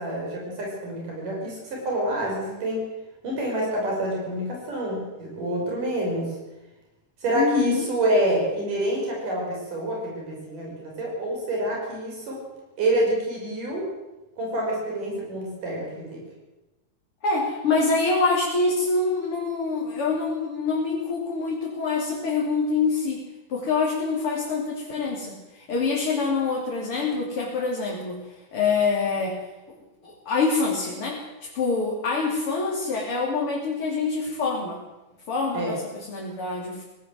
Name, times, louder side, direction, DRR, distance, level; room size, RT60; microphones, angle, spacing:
voice 1, 0.0-2.8 3.2-6.3 7.2-12.4 12.8-13.9 14.4-16.2 35.5-35.7, right 1 dB, 75° right, -2 dB, 7.2 m, -27 dB
voice 2, 7.3-7.9 17.2-23.2 23.5-25.4 25.7-28.2 28.5-29.4 30.0-34.8 35.3-36.8, left 4 dB, 45° left, -3 dB, 3.8 m, -25 dB
19.5 x 17.0 x 7.8 m, 1.0 s
omnidirectional pair, 3.7 m